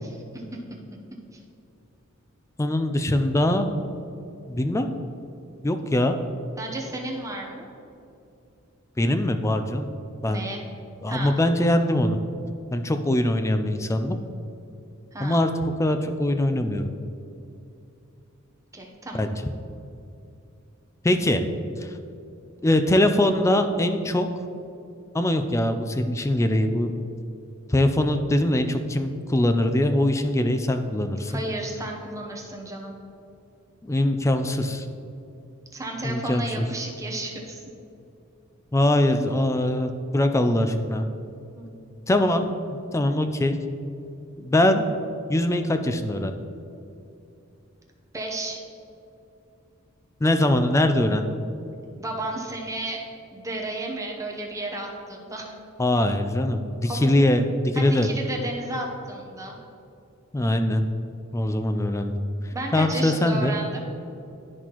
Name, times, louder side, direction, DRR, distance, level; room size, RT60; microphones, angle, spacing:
voice 1, 0.0-0.4 1.3-1.4 6.6-7.7 10.3-10.6 11.1-11.3 15.1-15.4 18.7-19.3 31.3-33.0 35.7-37.6 41.5-41.8 48.1-48.6 52.0-53.0 53.3-55.6 56.8-57.2 57.7-59.6 62.5-63.8, right 1 dB, 15° right, 0 dB, 0.8 m, -33 dB
voice 2, 2.6-3.7 4.5-4.9 5.6-6.2 9.0-9.9 10.2-10.4 11.0-12.2 12.7-14.2 15.2-15.5 15.8-16.9 19.1-19.3 21.0-21.4 22.6-24.3 25.1-26.9 27.7-31.3 33.8-34.9 36.0-36.5 38.7-41.1 42.1-43.6 44.4-44.9 45.3-46.3 50.2-51.4 55.8-58.1 60.3-60.9 61.3-62.2 62.7-63.5, left 1 dB, 15° left, 7 dB, 0.4 m, -22 dB
12.0 x 4.2 x 3.0 m, 2.7 s
head